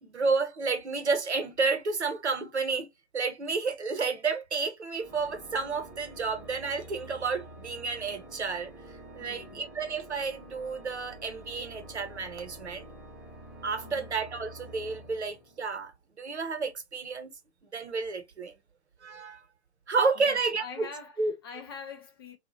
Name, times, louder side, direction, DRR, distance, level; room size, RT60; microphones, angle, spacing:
voice 1, 0.0-8.7 9.1-12.9 13.6-15.9 16.2-17.3 17.7-18.5 19.0-19.4 19.9-20.9 21.2-21.3, right 4 dB, 80° right, 0.8 m, -31 dB
Organ, 4.9-15.9, right 1 dB, ahead, 0.9 m, -48 dB
voice 2, 9.2-9.7 13.8-14.1 20.2-22.4, left 6 dB, 20° left, 0.4 m, -44 dB
2.8 x 2.3 x 2.6 m
figure-of-eight pair, 115°, 33 cm